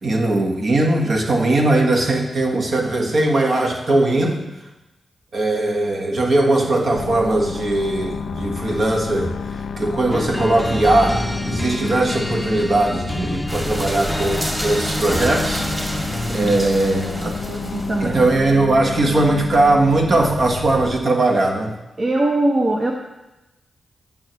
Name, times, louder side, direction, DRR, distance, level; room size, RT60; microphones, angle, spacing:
voice 1, 0.0-4.4 5.3-9.3 9.8-15.7 16.2-17.4 18.0-21.8, right 2 dB, 65° right, 1 dB, 1.3 m, -19 dB
sound 1, 6.9-21.0, left 5 dB, 75° left, 0.3 m, -30 dB
sound 2, 10.1-16.8, equal, 5° left, 0.6 m, -28 dB
sound 3, 13.5-18.3, equal, 20° right, 2.2 m, -29 dB
voice 2, 16.3-16.6 17.0-18.3 22.0-22.9, right 2 dB, 50° right, 0 dB, 0.9 m, -22 dB
8.6 x 7.1 x 3.1 m, 0.99 s
supercardioid pair, 45°, 0 cm